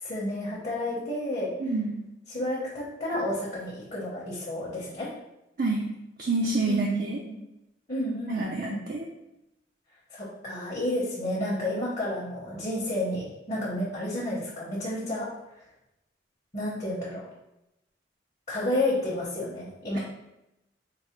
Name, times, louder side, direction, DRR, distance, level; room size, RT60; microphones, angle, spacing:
voice 1, 0.0-1.5 2.3-5.1 6.6-7.4 7.9-8.8 10.1-15.3 16.5-17.3 18.5-20.0, left 1 dB, 40° left, -7 dB, 1.0 m, -31 dB
voice 2, 1.6-1.9 5.6-5.8 6.2-7.2 8.3-9.1 19.9-20.0, right 3 dB, 50° right, -1 dB, 0.5 m, -27 dB
4.0 x 2.1 x 4.4 m, 0.90 s
head